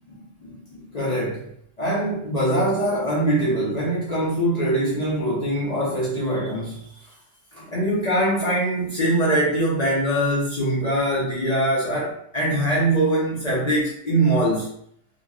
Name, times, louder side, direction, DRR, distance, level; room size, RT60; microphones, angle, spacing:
voice 1, 0.1-1.4 1.8-6.9 7.5-14.7, right 1 dB, 50° left, -6 dB, 0.5 m, -23 dB
2.9 x 2.3 x 2.3 m, 0.68 s
omnidirectional pair, 1.4 m